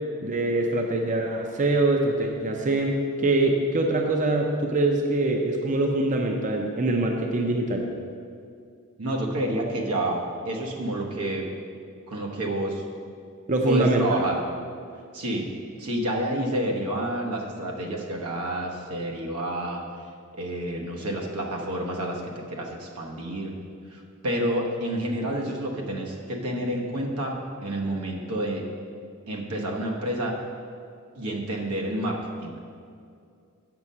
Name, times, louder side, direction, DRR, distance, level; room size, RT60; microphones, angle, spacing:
voice 1, 0.2-7.8 13.5-14.2, right 2 dB, 35° right, 2 dB, 0.6 m, -24 dB
voice 2, 9.0-11.5 12.1-12.8 13.6-14.4 15.1-15.5 15.8-19.8 20.4-23.6 23.9-28.7 29.3-30.4 31.2-32.5, right 1 dB, 85° right, 0 dB, 1.2 m, -29 dB
7.3 x 6.0 x 5.5 m, 2.4 s
head